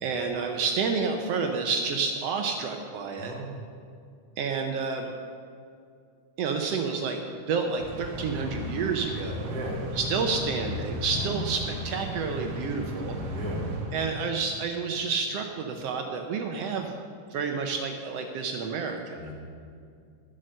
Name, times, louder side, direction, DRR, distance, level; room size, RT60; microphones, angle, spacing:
voice 1, 0.0-3.3 4.4-5.1 6.4-7.2 7.5-9.5 9.9-13.2 13.9-16.9 17.3-19.2, right 5 dB, 75° right, 3 dB, 1.4 m, -29 dB
sound 1, 7.8-14.6, left 1 dB, 60° right, 1.0 m, -35 dB
voice 2, 9.5-9.8 11.1-11.4 13.3-13.6 19.2-19.3, equal, 5° left, -6 dB, 1.6 m, -35 dB
13.5 x 7.7 x 6.6 m, 2.3 s
omnidirectional pair, 3.7 m